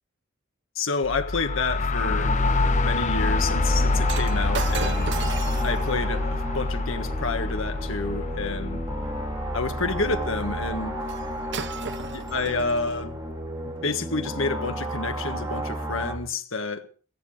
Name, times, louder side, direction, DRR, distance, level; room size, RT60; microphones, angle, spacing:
voice 1, 0.7-2.3 2.8-5.1 5.6-8.8 9.5-11.0 12.1-13.2 13.6-16.9, left 3 dB, 70° left, 1.5 m, -29 dB
sound 1, 1.0-12.7, left 3 dB, 35° left, 0.7 m, -27 dB
sound 2, 2.0-16.2, right 1 dB, 20° right, 3.5 m, -33 dB
Shatter, 4.1-8.4 11.1-11.3 11.5-13.0 13.8-13.9, right 6 dB, 55° right, 1.1 m, -37 dB
15.5 x 15.0 x 5.0 m
head